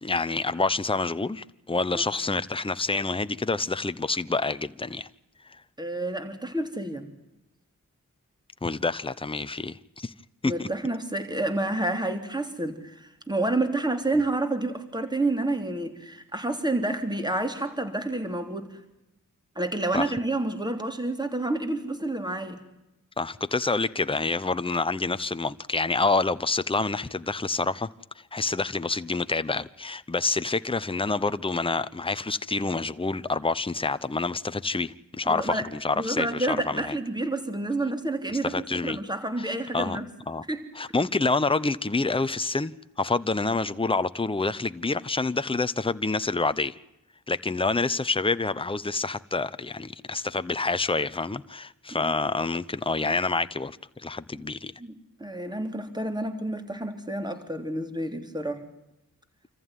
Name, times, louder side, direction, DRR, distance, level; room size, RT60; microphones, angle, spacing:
voice 1, 0.0-5.1 8.6-10.1 10.4-10.7 19.9-20.1 23.2-27.9 28.3-36.9 38.4-39.0 39.4-39.5 39.7-40.0 40.3-40.4 40.7-46.7 47.3-54.7, left 3 dB, 15° left, 0.9 m, -27 dB
voice 2, 5.8-7.1 10.4-18.8 19.6-22.6 35.3-35.7 36.0-40.1 40.5-40.6 51.9-52.1 54.8-54.9 55.2-58.7, right 2 dB, 10° right, 3.4 m, -29 dB
26.5 x 14.5 x 9.2 m
cardioid pair, 50°, 33 cm